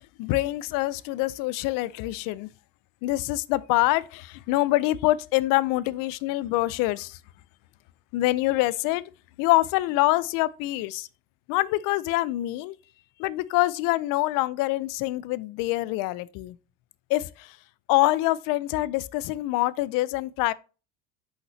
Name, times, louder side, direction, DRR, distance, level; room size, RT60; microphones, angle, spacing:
voice 1, 0.2-2.5 3.0-7.2 8.1-9.0 9.4-11.1 11.5-12.8 13.2-16.6 17.1-17.6 17.9-20.5, left 18 dB, 55° left, 0.5 m, -25 dB
5.8 x 5.4 x 3.1 m
cardioid pair, 135°, 40 cm